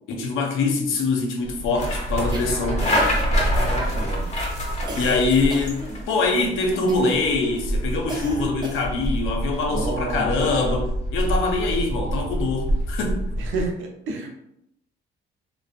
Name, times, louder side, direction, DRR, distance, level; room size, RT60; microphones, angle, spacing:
voice 1, 0.1-2.8 4.9-13.2, left 3 dB, 90° left, 0.5 m, -24 dB
sound 1, 1.4-13.7, equal, 35° left, 0.8 m, -26 dB
sound 2, 2.3-3.2 3.6-4.1 4.9-6.4 6.9-7.3 8.1-9.1, right 2 dB, 20° right, 0.5 m, -38 dB
voice 2, 2.5-3.0 3.5-4.3 9.7-10.5 13.4-14.3, right 3 dB, 80° right, 0.6 m, -31 dB
2.5 x 2.1 x 2.4 m
cardioid pair, 90°, 20 cm